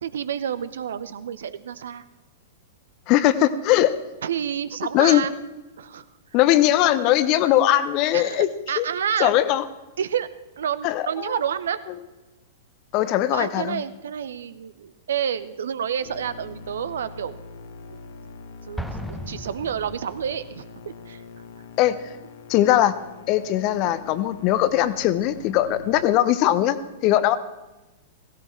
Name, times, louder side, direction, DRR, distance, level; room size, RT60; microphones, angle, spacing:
voice 1, 0.0-2.0 4.2-5.3 5.8-6.0 8.1-9.3 10.0-10.3 10.6-11.8 13.3-17.4 17.9-18.0 18.7-21.2 25.7-25.8 27.1-27.2, right 8 dB, 65° right, 15 dB, 0.7 m, -29 dB
voice 2, 3.1-3.9 4.9-5.2 6.3-8.5 8.8-8.9 9.2-9.6 10.8-11.1 12.9-13.8 21.8-22.0 22.5-23.0 23.3-27.4, left 13 dB, 40° left, 14 dB, 0.8 m, -20 dB
sound 1, 16.0-26.0, left 4 dB, 60° left, 1.2 m, -43 dB
Explosion, 18.8-20.5, equal, ahead, 1.0 m, -36 dB
16.5 x 16.0 x 4.5 m, 1.1 s
figure-of-eight pair, 100°, 0 cm